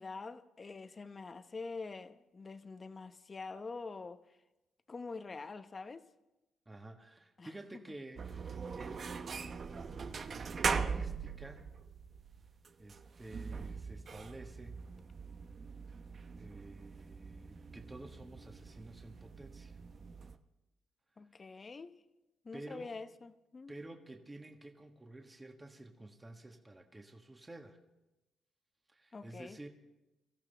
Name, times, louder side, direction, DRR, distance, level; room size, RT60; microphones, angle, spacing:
voice 1, 0.0-4.2 4.9-6.0 7.4-7.5 21.2-22.0 22.4-23.7 29.1-29.6, left 4 dB, 30° left, 0.9 m, -45 dB
voice 2, 6.6-11.6 12.8-14.8 16.3-19.8 22.5-23.0 23.7-27.8 28.9-29.7, right 2 dB, 15° right, 1.5 m, -51 dB
sound 1, 8.2-20.4, right 5 dB, 45° right, 0.8 m, -41 dB
23.5 x 14.5 x 3.4 m
cardioid pair, 90°, 0 cm